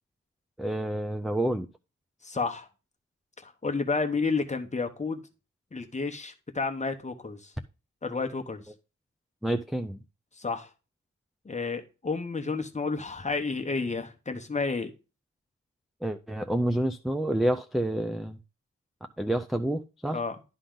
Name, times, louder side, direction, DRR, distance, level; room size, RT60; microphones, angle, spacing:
voice 1, 0.6-1.7 9.4-10.0 16.0-18.4 19.2-20.2, right 1 dB, ahead, 0.4 m, -28 dB
voice 2, 2.2-2.7 3.4-5.2 5.7-7.5 8.0-8.6 10.4-10.7 11.4-14.9 20.1-20.4, left 4 dB, 25° left, 1.0 m, -31 dB
11.5 x 3.8 x 3.7 m
wide cardioid pair, 120°, 31 cm